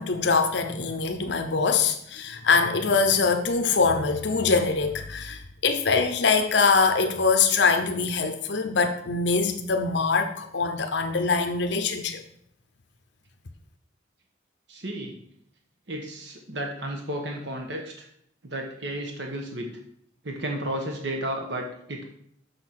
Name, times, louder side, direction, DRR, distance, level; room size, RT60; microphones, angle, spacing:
voice 1, 0.0-12.2, left 4 dB, 70° left, 6 dB, 0.8 m, -23 dB
voice 2, 14.7-15.2 15.9-18.1 18.4-19.7 20.2-22.1, right 1 dB, 70° right, 1 dB, 1.3 m, -33 dB
6.8 x 6.4 x 5.9 m, 0.71 s
head